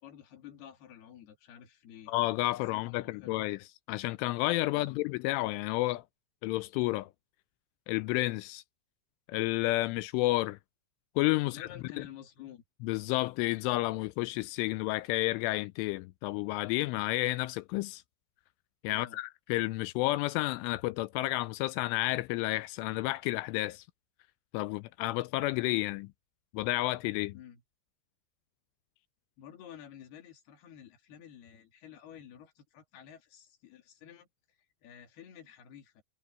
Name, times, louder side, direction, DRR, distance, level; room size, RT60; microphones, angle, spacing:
voice 1, 0.0-2.1 2.7-3.4 4.7-4.9 11.4-12.6 18.9-19.2 27.3-27.6 29.4-36.0, left 9 dB, 55° left, 4.3 m, -51 dB
voice 2, 2.1-3.6 3.9-6.0 6.4-7.1 7.9-8.6 9.3-10.6 11.2-11.7 12.0-12.1 12.8-18.0 18.8-23.8 24.5-26.1 26.5-27.4, left 19 dB, 85° left, 2.9 m, -31 dB
omnidirectional pair, 6.0 m